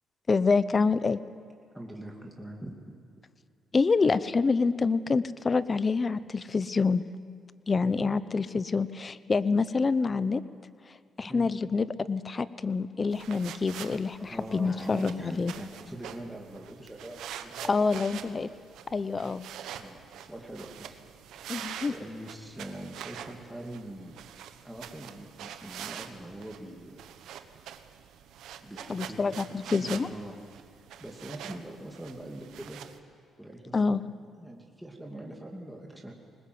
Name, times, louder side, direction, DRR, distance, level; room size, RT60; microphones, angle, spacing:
voice 1, 0.3-1.2 3.7-7.0 7.7-10.4 11.2-15.5 17.7-18.5 18.9-19.4 21.5-21.9 28.9-30.1 33.7-34.0, left 4 dB, 30° left, 16 dB, 0.8 m, -27 dB
voice 2, 1.7-3.0 11.2-11.5 14.3-18.4 19.8-21.0 21.9-24.2 24.6-27.1 28.6-30.4 31.0-32.8 33.4-36.1, right 1 dB, 5° right, -1 dB, 2.5 m, -43 dB
sound 1, 13.1-33.0, right 9 dB, 80° right, 1.1 m, -45 dB
20.5 x 20.0 x 7.9 m, 2.4 s
cardioid pair, 90°, 0 cm